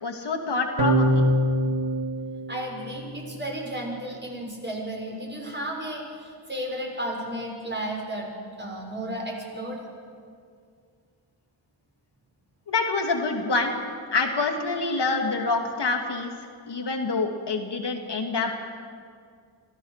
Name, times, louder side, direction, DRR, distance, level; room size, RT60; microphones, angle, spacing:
voice 1, 0.0-1.3 12.7-13.7 14.1-16.3 16.7-18.5, left 3 dB, 70° left, 3 dB, 2.5 m, -26 dB
sound 1, 0.8-3.4, equal, 85° right, 2.4 m, -24 dB
voice 2, 2.5-8.3 8.6-9.8, right 1 dB, 25° right, -1 dB, 6.1 m, -33 dB
25.5 x 16.0 x 6.7 m, 2.2 s
wide cardioid pair, 80°, 42 cm